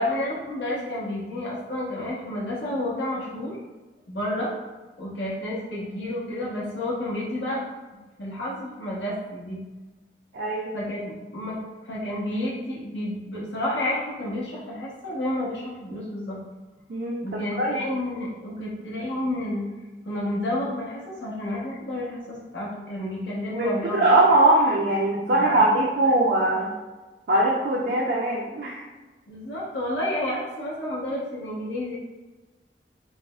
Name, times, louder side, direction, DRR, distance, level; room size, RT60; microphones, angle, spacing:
voice 1, 0.0-3.6 4.1-4.5 5.0-7.6 7.9-9.6 10.7-11.6 11.8-16.4 17.2-19.7 20.1-24.1 25.3-25.8 29.3-32.0, left 1 dB, 90° left, -5 dB, 1.0 m, -30 dB
voice 2, 10.3-10.7 16.9-17.2 17.6-17.8 23.6-26.7 27.3-28.8, right 2 dB, 60° right, -3 dB, 0.5 m, -21 dB
4.7 x 2.0 x 2.3 m, 1.2 s
head